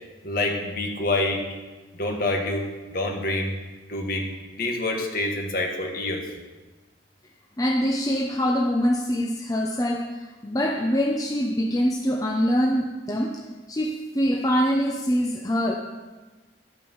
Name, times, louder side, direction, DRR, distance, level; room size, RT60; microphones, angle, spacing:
voice 1, 0.2-1.5 1.9-3.5 3.9-6.3, left 2 dB, 50° left, 2 dB, 1.9 m, -27 dB
voice 2, 7.6-10.1 10.4-13.4 13.7-15.8, equal, 20° left, 1 dB, 0.7 m, -24 dB
13.0 x 9.0 x 5.6 m, 1.2 s
head